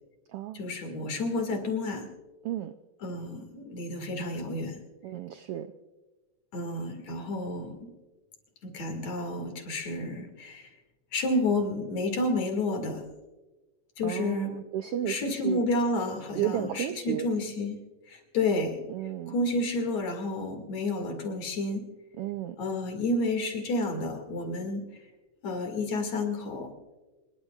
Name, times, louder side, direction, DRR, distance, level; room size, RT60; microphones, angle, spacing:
voice 1, 0.5-2.1 3.0-4.8 6.5-7.9 8.6-10.7 11.1-13.0 14.0-14.5 15.0-17.8 18.1-18.8 19.3-21.9 22.6-24.8 25.4-26.7, left 2 dB, 65° left, 4 dB, 3.4 m, -30 dB
voice 2, 2.4-2.7 5.0-5.7 14.0-15.6 16.3-17.3 18.9-19.3 22.2-22.6, right 12 dB, 80° right, 10 dB, 1.3 m, -33 dB
26.5 x 21.0 x 2.4 m, 1.2 s
omnidirectional pair, 3.3 m